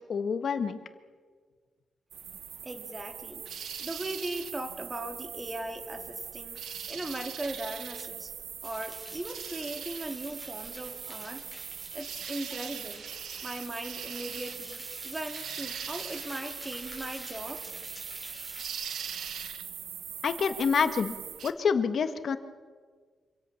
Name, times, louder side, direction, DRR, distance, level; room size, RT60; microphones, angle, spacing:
voice 1, 0.1-0.8 20.2-21.1 21.4-22.4, left 6 dB, 55° left, 9 dB, 1.5 m, -27 dB
sound 1, 2.1-21.5, right 8 dB, 75° right, 1.3 m, -41 dB
voice 2, 2.6-3.4 3.8-6.6 6.9-8.3 8.6-11.4 11.9-13.0 13.4-17.6, right 1 dB, 15° right, 6 dB, 2.3 m, -38 dB
sound 2, 8.6-18.7, left 1 dB, ahead, 6.8 m, -48 dB
26.0 x 17.0 x 7.2 m, 1.5 s
cardioid pair, 125°, 0 cm